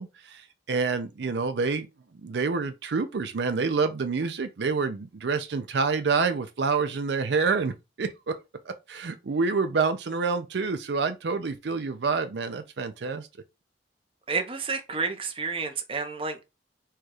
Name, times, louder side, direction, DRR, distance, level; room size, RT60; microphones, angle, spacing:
voice 1, 0.0-1.9 2.2-8.4 8.6-13.3, right 4 dB, 70° right, 0.5 m, -27 dB
voice 2, 14.3-16.6, right 4 dB, 30° right, 0.8 m, -30 dB
4.4 x 2.4 x 4.7 m
head